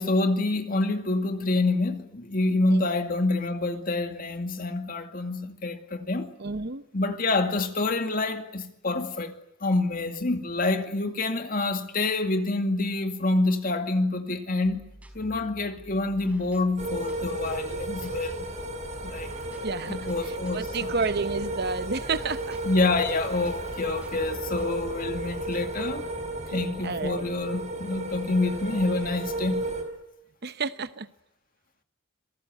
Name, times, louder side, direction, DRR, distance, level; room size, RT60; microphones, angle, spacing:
voice 1, 0.0-6.3 6.9-14.8 15.1-18.5 19.0-19.3 19.9-20.9 22.6-26.0 26.5-29.7, left 2 dB, 45° left, 2.3 m, -27 dB
voice 2, 2.7-3.0 6.4-6.9 19.6-22.6 26.5-27.3 30.4-31.1, right 4 dB, 55° right, 0.9 m, -31 dB
sound 1, 14.6-25.6, equal, 5° right, 5.2 m, -50 dB
sound 2, 16.8-29.8, right 1 dB, 35° right, 4.6 m, -34 dB
26.5 x 19.5 x 9.4 m
head